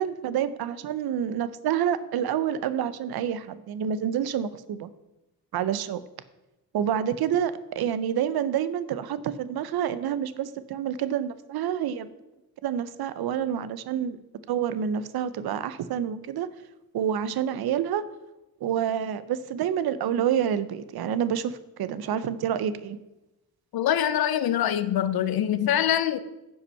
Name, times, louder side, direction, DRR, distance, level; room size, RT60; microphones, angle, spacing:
voice 1, 0.0-4.9 5.5-6.0 6.7-12.1 12.6-14.2 14.5-16.5 16.9-18.0 18.6-23.0, right 9 dB, 90° right, 15 dB, 0.6 m, -28 dB
voice 2, 23.7-26.2, left 10 dB, 85° left, 14 dB, 0.7 m, -24 dB
9.7 x 5.7 x 5.5 m, 0.98 s
wide cardioid pair, 145°, 36 cm